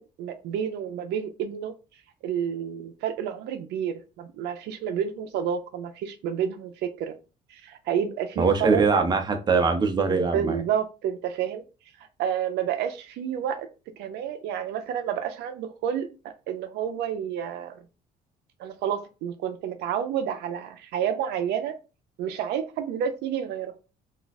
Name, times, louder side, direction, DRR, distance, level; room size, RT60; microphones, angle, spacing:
voice 1, 0.0-1.7 2.2-7.2 7.5-8.8 10.1-11.6 12.2-13.7 14.0-16.1 16.5-17.8 18.6-21.8 22.2-23.8, right 8 dB, 80° right, 7 dB, 0.5 m, -30 dB
voice 2, 8.4-10.6, right 4 dB, 25° right, 5 dB, 0.6 m, -22 dB
2.4 x 2.2 x 4.0 m, 0.31 s
cardioid pair, 110°, 17 cm